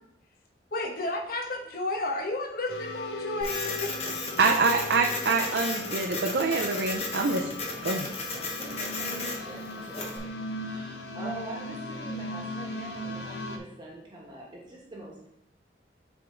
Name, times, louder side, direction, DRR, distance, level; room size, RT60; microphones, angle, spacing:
voice 1, 0.7-3.9, left 2 dB, 55° left, 0 dB, 1.0 m, -32 dB
sound 1, 2.7-13.6, left 1 dB, 70° left, 0.7 m, -38 dB
Printer, 3.4-10.2, left 3 dB, 35° left, 1.0 m, -34 dB
voice 2, 4.4-7.5 7.8-8.1, right 4 dB, 70° right, 1 dB, 0.5 m, -25 dB
voice 3, 8.3-15.3, right 2 dB, 25° right, -4 dB, 1.2 m, -43 dB
7.8 x 3.6 x 3.8 m, 0.80 s
head